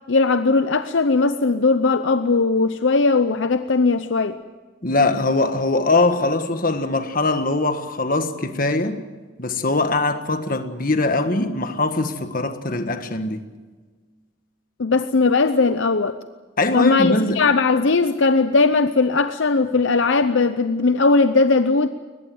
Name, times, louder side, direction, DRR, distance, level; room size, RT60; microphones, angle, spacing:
voice 1, 0.1-4.4 14.8-16.2 16.7-21.9, left 3 dB, 65° left, 0.7 m, -18 dB
voice 2, 4.8-9.0 9.4-13.5 16.6-17.5, left 2 dB, 40° left, 1.6 m, -22 dB
22.5 x 20.5 x 7.8 m
head